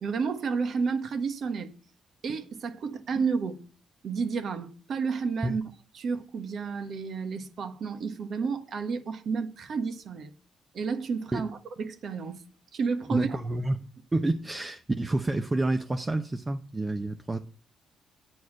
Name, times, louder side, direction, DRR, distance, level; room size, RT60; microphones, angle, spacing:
voice 1, 0.0-1.7 2.2-3.6 4.0-5.6 5.9-10.3 10.7-11.5 11.8-12.4 12.7-13.4, right 5 dB, 60° right, 1.3 m, -31 dB
voice 2, 13.1-13.8 14.1-17.4, right 2 dB, 20° right, 0.7 m, -28 dB
9.4 x 4.7 x 7.4 m
cardioid pair, 90°, 0 cm